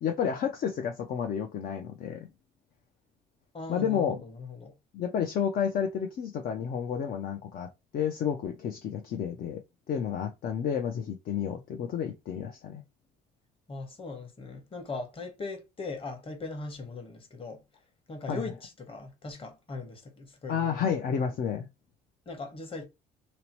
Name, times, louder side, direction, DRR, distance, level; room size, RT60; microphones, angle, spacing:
voice 1, 0.0-2.3 3.7-4.2 4.9-7.7 7.9-9.6 9.9-12.8 18.3-18.4 20.5-21.7, left 8 dB, 50° left, 0.5 m, -30 dB
voice 2, 3.5-4.8 13.7-17.6 18.1-21.0 22.3-22.8, left 3 dB, 30° left, 1.1 m, -39 dB
2.9 x 2.0 x 2.9 m
supercardioid pair, 80°, 18 cm